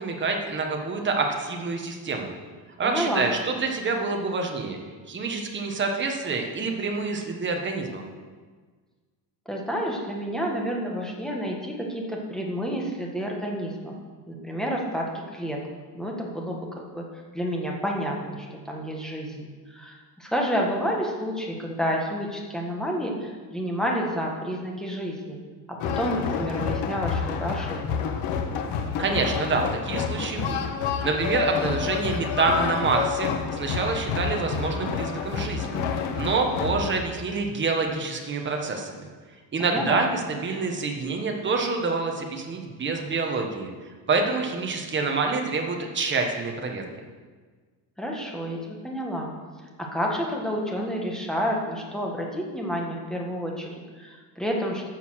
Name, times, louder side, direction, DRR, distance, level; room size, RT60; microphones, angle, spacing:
voice 1, 0.0-2.3 2.8-4.8 5.1-8.0 29.0-30.7 31.0-38.9 39.5-43.7 44.1-46.9, right 4 dB, 25° right, 2 dB, 1.4 m, -27 dB
voice 2, 2.8-3.2 9.5-13.9 14.3-15.6 15.9-17.0 17.3-25.4 25.7-28.1 39.6-40.0 48.0-49.3 49.8-54.9, equal, ahead, -1 dB, 1.6 m, -30 dB
sound 1, 25.8-37.0, left 6 dB, 85° left, 1.4 m, -29 dB
12.0 x 6.9 x 6.4 m, 1.5 s
cardioid pair, 160°, 42 cm